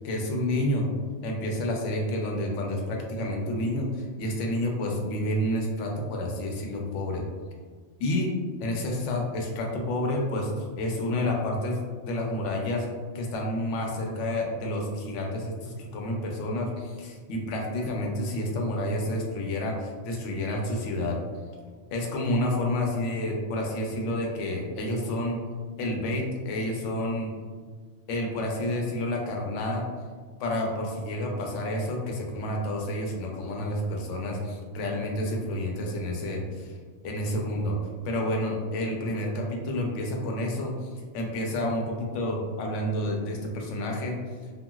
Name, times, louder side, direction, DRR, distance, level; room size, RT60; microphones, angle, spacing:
voice 1, 0.0-0.9 1.2-7.2 8.0-8.3 8.6-12.9 13.1-21.2 21.9-25.4 25.8-27.3 28.1-29.9 30.4-36.7 37.0-37.8 38.0-44.2, left 1 dB, 90° left, 0 dB, 0.9 m, -29 dB
2.9 x 2.5 x 2.3 m, 1.6 s
omnidirectional pair, 1.2 m